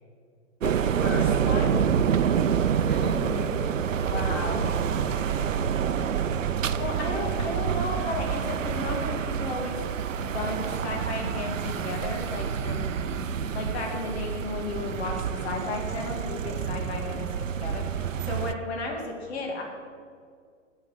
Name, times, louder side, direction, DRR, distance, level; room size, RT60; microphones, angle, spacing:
voice 1, 0.6-1.9 4.0-4.7 6.8-9.8 10.2-12.9 13.5-19.6, left 3 dB, 55° left, 1 dB, 2.3 m, -34 dB
sound 1, 0.6-18.5, right 7 dB, 80° right, 0.6 m, -27 dB
voice 2, 2.8-3.7 4.2-5.6 13.2-13.5, left 2 dB, 30° left, -2 dB, 3.0 m, -38 dB
8.8 x 7.4 x 7.3 m, 2.1 s
figure-of-eight pair, 110°, 38 cm